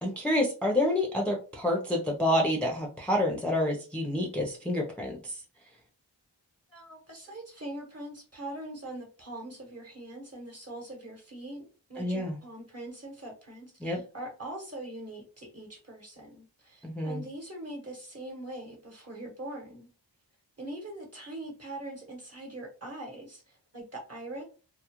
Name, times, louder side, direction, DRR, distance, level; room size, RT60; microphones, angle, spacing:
voice 1, 0.0-5.4 12.0-12.4 13.8-14.0 16.8-17.2, left 1 dB, 5° left, 0 dB, 0.5 m, -28 dB
voice 2, 6.7-19.9 20.6-24.4, right 1 dB, 35° right, -1 dB, 1.0 m, -42 dB
2.3 x 2.1 x 2.9 m, 0.35 s
wide cardioid pair, 40°, 43 cm